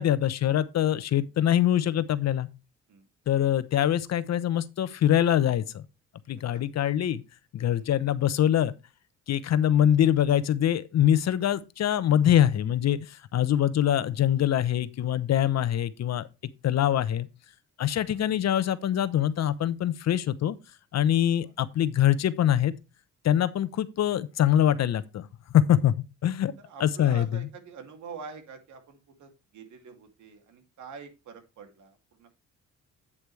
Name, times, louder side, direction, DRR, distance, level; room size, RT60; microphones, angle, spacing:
voice 1, 0.0-2.5 3.3-5.8 6.3-7.2 7.5-8.7 9.3-16.3 16.6-17.3 17.8-20.6 20.9-22.7 23.2-25.3 25.5-25.9 26.2-26.5 26.8-27.5, left 11 dB, 60° left, 0.9 m, -24 dB
voice 2, 26.6-32.3, right 5 dB, 75° right, 2.6 m, -46 dB
8.7 x 8.1 x 3.2 m
cardioid pair, 90°, 30 cm